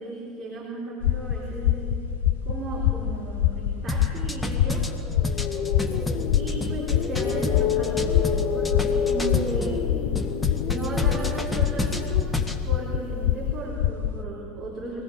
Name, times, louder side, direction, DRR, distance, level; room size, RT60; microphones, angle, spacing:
voice 1, 0.0-2.0 2.5-4.9 6.3-10.0 10.6-12.3 12.6-15.0, right 3 dB, 30° right, -4 dB, 4.3 m, -35 dB
sound 1, 1.0-14.2, left 10 dB, 65° left, 0.7 m, -26 dB
sound 2, 3.9-9.8 10.1-12.6, left 1 dB, 10° left, 1.8 m, -30 dB
sound 3, 5.1-13.2, left 7 dB, 40° left, 1.2 m, -30 dB
23.0 x 18.0 x 8.0 m, 2.8 s
figure-of-eight pair, 75°, 0 cm